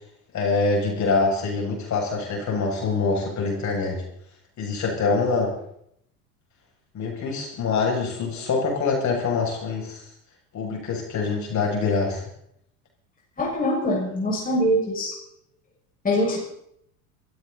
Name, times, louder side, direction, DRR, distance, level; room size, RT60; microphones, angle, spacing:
voice 1, 0.3-4.0 4.6-5.5 6.9-10.0 10.5-12.2, left 4 dB, 40° left, -1 dB, 7.4 m, -25 dB
voice 2, 13.4-15.1 16.0-16.4, left 1 dB, 20° left, -4 dB, 6.5 m, -23 dB
23.0 x 14.5 x 4.2 m, 0.72 s
hypercardioid pair, 85°, 44 cm